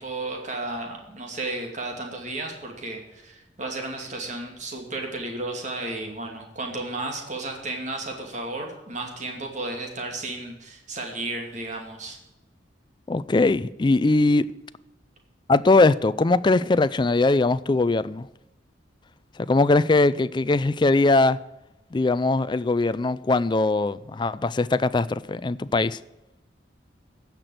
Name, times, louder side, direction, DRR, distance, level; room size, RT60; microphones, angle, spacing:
voice 1, 0.0-12.2, right 2 dB, 40° right, 2.6 m, -33 dB
voice 2, 13.1-14.5 15.5-18.3 19.5-21.4 21.9-26.0, left 2 dB, 25° left, 0.4 m, -21 dB
15.5 x 6.0 x 7.8 m
head